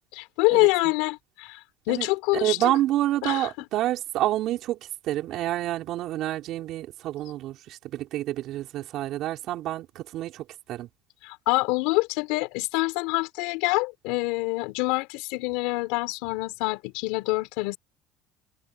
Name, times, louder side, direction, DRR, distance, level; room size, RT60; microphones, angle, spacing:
voice 1, 0.1-2.7 3.2-3.5 11.2-17.8, left 24 dB, 75° left, 3.6 m, -26 dB
voice 2, 2.4-4.8 5.0-10.9, right 14 dB, 55° right, 5.1 m, -28 dB
open air
supercardioid pair, 120°, 0 cm